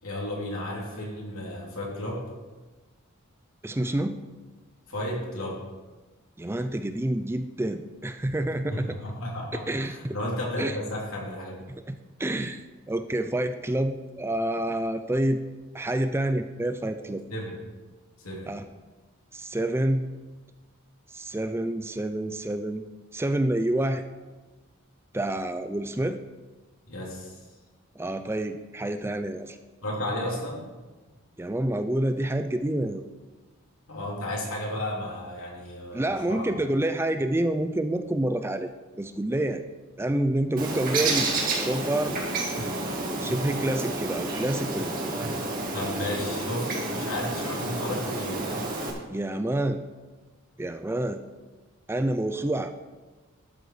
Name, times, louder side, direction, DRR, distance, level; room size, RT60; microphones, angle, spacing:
voice 1, 0.0-2.2 4.9-5.6 8.7-11.6 17.3-17.6 18.2-18.5 26.9-27.4 29.8-30.6 33.9-36.5 45.7-48.6, left 1 dB, 75° left, -3 dB, 3.2 m, -33 dB
voice 2, 3.6-4.2 6.4-9.0 9.7-10.2 10.6-10.8 11.9-15.4 15.7-17.2 18.5-18.6 19.3-20.0 21.1-22.8 23.1-24.0 25.1-26.2 28.0-29.6 31.4-33.0 35.9-38.7 39.0-39.6 40.0-42.2 42.8-45.3 49.1-49.8 50.6-51.2 51.9-52.7, right 1 dB, 10° right, 9 dB, 0.4 m, -28 dB
Bird, 40.6-48.9, right 2 dB, 40° right, 2.0 m, -30 dB
12.5 x 7.5 x 4.9 m, 1.2 s
head